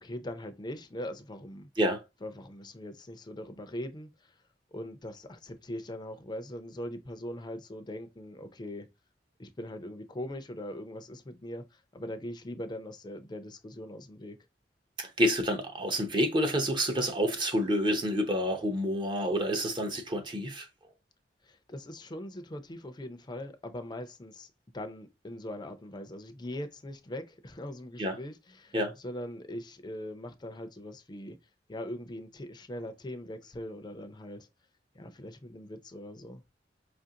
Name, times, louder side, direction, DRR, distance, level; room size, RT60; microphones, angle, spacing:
voice 1, 0.0-1.7 2.2-4.4 4.7-8.9 9.4-14.4 21.4-31.4 31.7-34.5 34.9-36.4, left 1 dB, 25° left, 0.5 m, -41 dB
voice 2, 15.0-20.7 28.0-28.2 28.7-29.0, equal, 25° right, 0.6 m, -28 dB
4.9 x 2.5 x 2.7 m
head